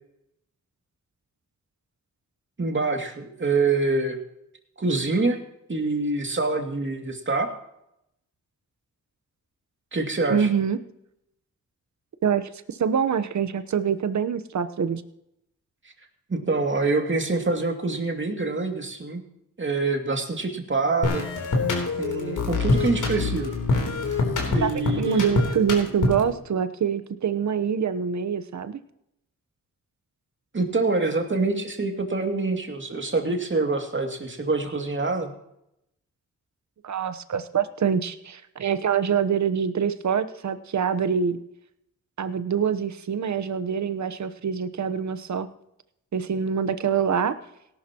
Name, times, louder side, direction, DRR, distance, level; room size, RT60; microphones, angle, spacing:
voice 1, 2.6-4.2 4.8-5.4 5.7-7.5 9.9-10.5 16.3-19.2 19.6-21.3 22.0-23.5 24.5-25.3 30.5-35.3, right 3 dB, 35° right, 4 dB, 2.5 m, -25 dB
voice 2, 10.3-10.8 12.2-15.0 24.6-28.8 36.8-41.4 42.2-45.5 46.1-47.3, right 7 dB, 60° right, 12 dB, 1.0 m, -25 dB
sound 1, 21.0-26.4, left 3 dB, 70° left, 3.4 m, -25 dB
18.0 x 11.5 x 3.0 m, 0.80 s
cardioid pair, 60°, 32 cm